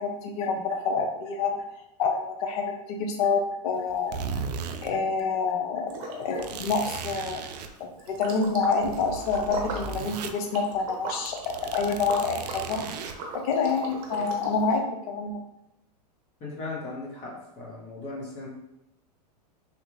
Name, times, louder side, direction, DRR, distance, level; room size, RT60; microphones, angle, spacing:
voice 1, 0.0-1.5 2.0-4.1 4.8-7.4 7.8-12.8 13.3-15.4, left 4 dB, 60° left, 3 dB, 0.6 m, -27 dB
sound 1, 3.9-4.9 5.2-5.3 6.4-7.7 8.3-10.3 10.7-10.9 11.2-13.2, right 5 dB, 75° right, 0.4 m, -36 dB
Liquid, 5.9-6.6 6.8-14.8, right 3 dB, 50° right, 0.8 m, -40 dB
voice 2, 16.4-18.5, left 3 dB, 30° left, -4 dB, 1.3 m, -37 dB
3.3 x 2.4 x 3.1 m, 0.85 s
hypercardioid pair, 130°, 21 cm